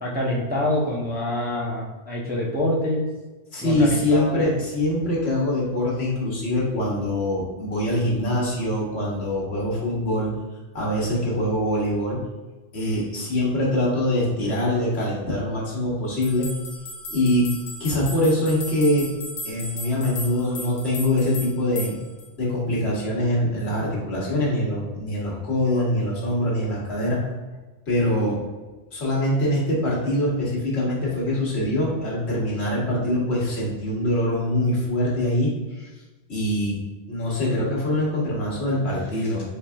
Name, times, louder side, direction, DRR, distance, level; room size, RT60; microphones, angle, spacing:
voice 1, 0.0-3.1 3.6-4.5, left 1 dB, 10° right, -5 dB, 0.6 m, -26 dB
voice 2, 3.5-10.3 10.7-12.2 12.7-16.5 17.1-17.5 17.8-19.1 19.4-22.0 22.4-27.2 27.9-28.4 28.9-35.9 36.3-36.8 37.1-39.4, left 1 dB, 70° left, -4 dB, 1.4 m, -23 dB
sound 1, 16.2-22.3, equal, 85° left, 1.2 m, -36 dB
4.6 x 3.6 x 2.3 m, 1.2 s
omnidirectional pair, 1.2 m